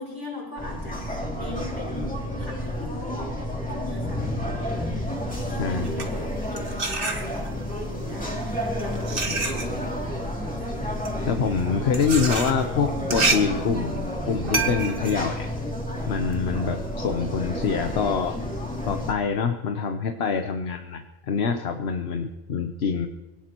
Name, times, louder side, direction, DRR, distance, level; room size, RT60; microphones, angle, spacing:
voice 1, 0.0-4.3 4.7-5.1 5.4-10.8 11.8-11.9 14.0-14.1 16.5-16.7, left 2 dB, 50° left, -3 dB, 6.7 m, -40 dB
sound 1, 0.6-19.1, left 1 dB, 10° left, 2.5 m, -30 dB
voice 2, 5.6-5.9 11.3-15.5 16.1-18.4 18.8-23.1, left 6 dB, 80° left, 6 dB, 1.1 m, -25 dB
sound 2, 5.7-7.7 8.5-16.4, right 3 dB, 60° right, 1.7 m, -29 dB
24.5 x 18.0 x 3.0 m, 1.1 s
omnidirectional pair, 1.1 m